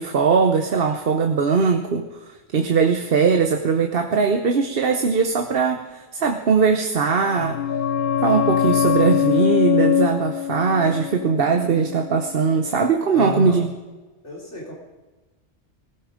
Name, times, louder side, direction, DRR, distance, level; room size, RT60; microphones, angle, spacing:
voice 1, 0.0-2.0 2.5-7.6 8.2-13.7, right 5 dB, 55° right, 5 dB, 1.1 m, -20 dB
sound 1, 7.0-12.4 12.7-12.8, left 9 dB, 55° left, 0.8 m, -23 dB
voice 2, 13.1-13.6 14.2-14.7, left 2 dB, 80° left, -2 dB, 4.0 m, -30 dB
19.5 x 14.0 x 5.1 m, 1.2 s
omnidirectional pair, 1.2 m